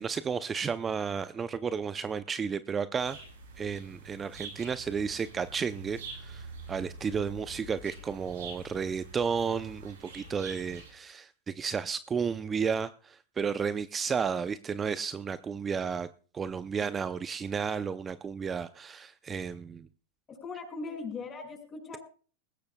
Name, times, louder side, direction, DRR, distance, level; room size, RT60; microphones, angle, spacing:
voice 1, 0.0-3.2 3.6-16.1 16.3-19.9, right 6 dB, 20° right, 13 dB, 0.6 m, -32 dB
sound 1, 3.0-10.9, right 3 dB, 75° right, 7.9 m, -46 dB
voice 2, 20.3-22.0, left 4 dB, 25° left, 3 dB, 6.2 m, -39 dB
20.0 x 16.0 x 2.3 m, 0.40 s
hypercardioid pair, 100°, 0 cm